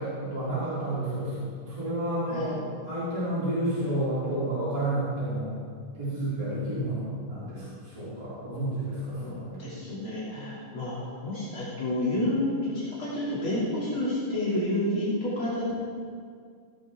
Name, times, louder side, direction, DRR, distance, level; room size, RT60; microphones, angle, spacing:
voice 1, 0.0-2.6 2.8-5.5 5.9-9.7, right 1 dB, 15° right, -12 dB, 4.0 m, -30 dB
voice 2, 9.6-15.8, left 1 dB, 70° left, -9 dB, 3.8 m, -29 dB
17.0 x 10.5 x 3.7 m, 2.1 s
omnidirectional pair, 2.4 m